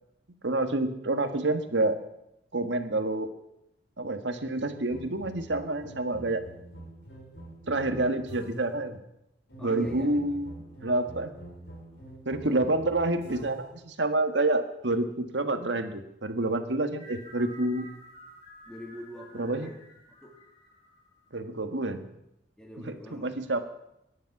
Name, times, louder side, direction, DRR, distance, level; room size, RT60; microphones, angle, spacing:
voice 1, 0.4-2.0 2.5-3.3 4.0-6.4 7.7-9.0 9.6-10.5 10.8-11.3 12.2-17.9 19.3-19.7 21.3-22.1 22.9-23.6, right 2 dB, 80° right, 8 dB, 1.6 m, -28 dB
sound 1, 4.6-8.8 9.5-13.8, right 1 dB, 65° left, 4.2 m, -46 dB
voice 2, 9.6-10.4 12.4-12.6 18.7-19.8 20.2-20.4 22.6-23.5, equal, 5° left, 0 dB, 3.0 m, -44 dB
sound 2, 17.0-21.7, equal, 30° left, 5.2 m, -52 dB
22.5 x 10.5 x 6.0 m, 0.84 s
head